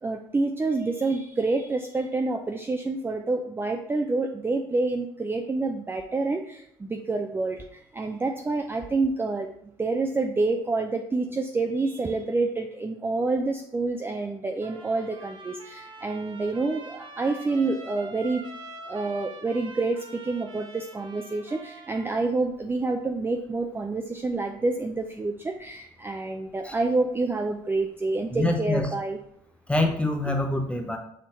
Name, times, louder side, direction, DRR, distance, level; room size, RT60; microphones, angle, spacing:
voice 1, 0.0-9.5 9.8-18.4 18.8-29.2, right 3 dB, 15° right, 3 dB, 0.4 m, -28 dB
Trumpet, 14.6-22.2, right 3 dB, 40° right, 1.0 m, -45 dB
voice 2, 28.3-28.9 29.7-31.0, left 2 dB, 10° left, 3 dB, 0.9 m, -25 dB
6.2 x 2.9 x 2.9 m, 0.70 s
hypercardioid pair, 65°, 13 cm